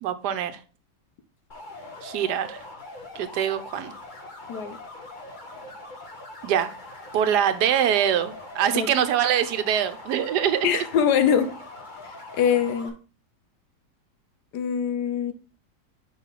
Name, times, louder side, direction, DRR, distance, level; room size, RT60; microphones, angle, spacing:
voice 1, 0.0-0.6 2.0-2.6 3.1-3.9 6.4-6.7 7.1-10.8, right 9 dB, 70° right, 11 dB, 1.2 m, -24 dB
sound 1, 1.5-12.9, left 2 dB, 30° left, 1.1 m, -42 dB
voice 2, 10.6-11.5 12.4-12.9 14.5-15.3, left 8 dB, 70° left, 10 dB, 1.3 m, -23 dB
5.7 x 4.0 x 5.7 m, 0.36 s
omnidirectional pair, 1.9 m